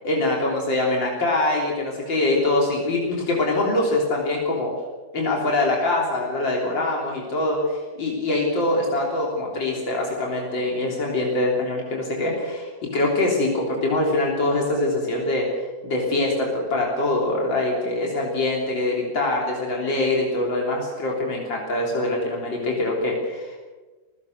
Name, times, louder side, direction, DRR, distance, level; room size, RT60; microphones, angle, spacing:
voice 1, 0.0-4.7 5.1-15.5 15.8-23.6, left 2 dB, 85° left, -2 dB, 4.1 m, -24 dB
26.5 x 16.5 x 6.6 m, 1.3 s
omnidirectional pair, 2.0 m